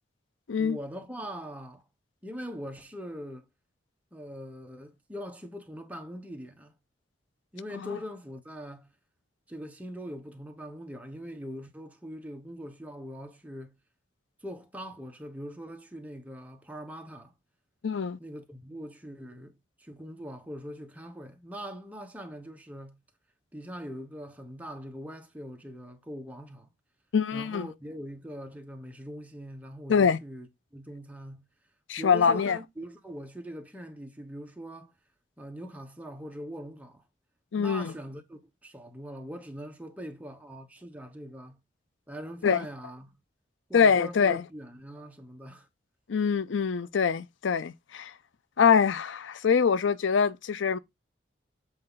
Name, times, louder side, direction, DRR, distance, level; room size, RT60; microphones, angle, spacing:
voice 1, 0.6-1.8 2.2-3.4 4.1-6.7 7.5-8.9 9.5-13.7 14.4-17.3 18.2-19.5 19.8-23.0 23.5-26.7 27.3-30.5 30.7-31.4 32.0-34.9 35.4-37.0 37.6-41.6 42.1-43.1 43.7-45.7, equal, 10° right, 1.0 m, -42 dB
voice 2, 17.8-18.2 27.1-27.7 29.9-30.2 31.9-32.6 37.5-37.9 42.4-42.7 43.7-44.4 46.1-48.1 48.6-50.8, left 6 dB, 80° left, 0.5 m, -24 dB
7.7 x 4.3 x 3.9 m
head